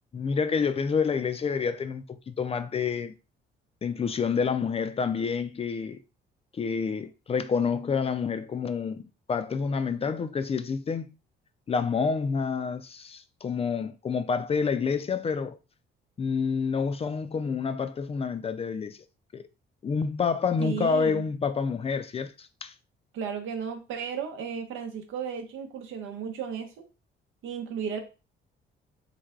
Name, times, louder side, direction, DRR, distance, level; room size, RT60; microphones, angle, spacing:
voice 1, 0.1-3.1 3.8-6.0 6.5-9.0 9.3-11.1 11.7-15.6 16.2-19.0 19.3-19.4 19.8-22.7, left 5 dB, 30° left, 0.3 m, -28 dB
voice 2, 20.6-21.2 23.1-26.8 27.4-28.0, right 7 dB, 85° right, 0.7 m, -34 dB
3.2 x 2.1 x 3.6 m
cardioid pair, 90°, 20 cm